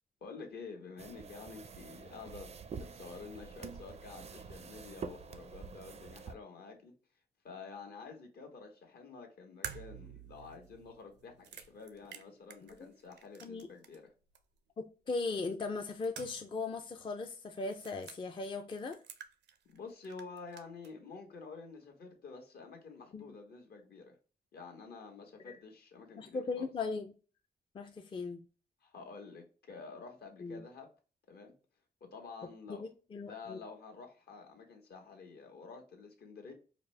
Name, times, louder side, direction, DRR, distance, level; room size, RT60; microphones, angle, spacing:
voice 1, 0.2-2.5 2.8-6.9 7.4-14.1 19.7-24.2 24.5-26.7 28.8-30.9 31.3-31.5 32.0-32.9 33.2-36.5, left 4 dB, 65° left, 1.3 m, -49 dB
sound 1, 1.0-6.3, right 5 dB, 40° right, 0.4 m, -47 dB
sound 2, 9.6-14.1 14.3-14.4 15.6-16.6 16.9-17.0 17.6-18.2 18.7-19.8 20.0-20.9, right 8 dB, 85° right, 0.6 m, -49 dB
voice 2, 14.8-19.0 23.1-23.2 25.5-25.6 26.2-27.1 27.7-28.4 30.4-30.6 33.1-33.6, left 3 dB, 30° left, 0.4 m, -38 dB
5.0 x 2.1 x 3.1 m
wide cardioid pair, 130°, 17 cm